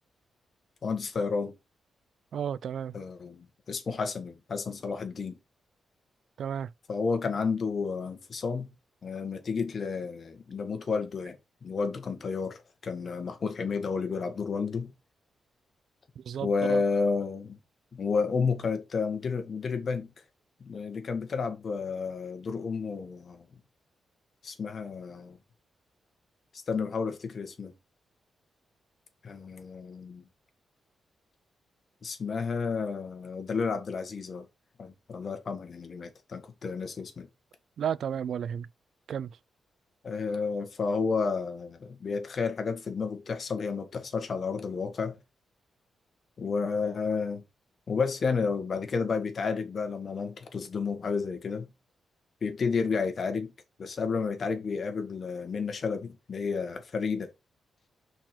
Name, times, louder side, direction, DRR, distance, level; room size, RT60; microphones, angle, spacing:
voice 1, 0.8-1.5 2.9-5.4 6.9-8.7 9.0-11.4 11.6-14.9 16.4-17.6 17.9-20.1 20.6-23.4 24.4-25.4 26.7-27.7 29.2-30.3 32.0-34.4 34.8-37.3 40.0-45.2 46.4-47.4 47.9-51.7 52.4-53.5 53.8-57.3, left 5 dB, 50° left, 1.6 m, -31 dB
voice 2, 2.3-2.9 6.4-6.7 16.2-16.8 37.8-38.7 39.1-39.4, right 8 dB, 75° right, 0.3 m, -33 dB
5.7 x 4.6 x 4.5 m
cardioid pair, 105°, 0 cm